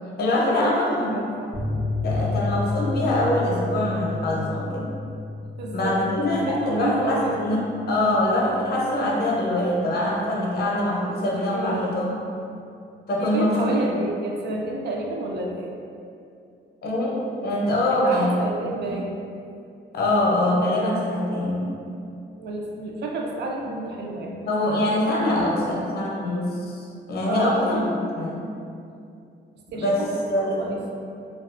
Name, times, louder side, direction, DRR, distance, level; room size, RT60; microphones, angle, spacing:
voice 1, 0.2-1.3 2.0-4.9 5.7-7.6 7.9-12.2 13.1-13.8 16.8-18.8 19.9-21.7 24.4-28.4 29.7-30.7, left 1 dB, 55° left, -3 dB, 0.6 m, -24 dB
voice 2, 0.9-1.5 5.6-6.0 6.5-7.4 11.5-11.8 13.2-15.7 17.9-19.2 22.4-24.8 25.4-25.8 27.3-27.7 29.7-30.9, right 2 dB, 60° right, 0 dB, 0.4 m, -30 dB
sound 1, 1.5-8.6 8.9-9.0 9.3-9.4, left 3 dB, 5° left, 0.5 m, -31 dB
2.3 x 2.3 x 2.3 m, 2.5 s
cardioid pair, 90°, 20 cm